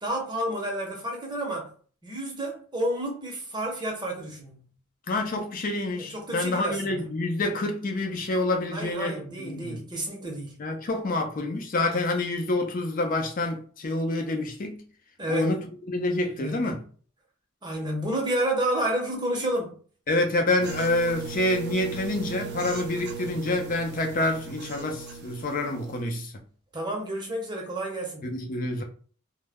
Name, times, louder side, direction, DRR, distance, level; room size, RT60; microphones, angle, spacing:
voice 1, 0.0-1.7 2.0-4.7 6.1-7.1 8.7-10.6 15.2-15.5 16.4-16.8 17.6-19.7 26.7-28.3, right 1 dB, 20° right, 0.7 m, -30 dB
voice 2, 5.1-9.8 10.6-14.8 15.3-16.8 20.1-26.3 28.2-28.8, left 2 dB, 40° left, 0.5 m, -27 dB
sound 1, 20.6-26.0, right 5 dB, 55° right, 0.4 m, -38 dB
2.1 x 2.0 x 3.4 m
head